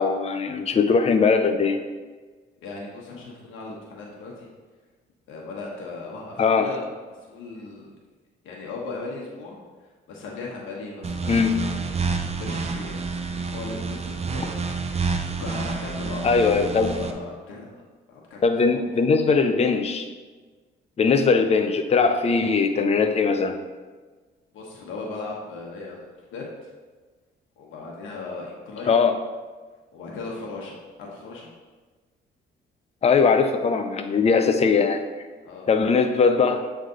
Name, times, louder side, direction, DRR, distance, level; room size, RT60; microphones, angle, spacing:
voice 1, 0.0-1.8 6.4-6.7 11.3-11.5 16.2-16.9 18.4-20.1 21.0-23.6 28.9-29.2 33.0-35.0 35.7-36.6, left 5 dB, 30° left, 7 dB, 0.5 m, -20 dB
voice 2, 2.6-4.5 5.3-6.9 7.2-7.9 8.4-9.6 10.1-11.3 12.4-13.0 13.5-14.6 15.4-17.8 18.1-18.8 24.5-26.7 27.6-28.9 29.9-31.5 35.4-35.7, left 3 dB, 85° left, -2 dB, 1.1 m, -37 dB
sound 1, 11.0-17.1, right 4 dB, 30° right, 0.5 m, -29 dB
7.7 x 3.4 x 3.8 m, 1.4 s
cardioid pair, 90°, 20 cm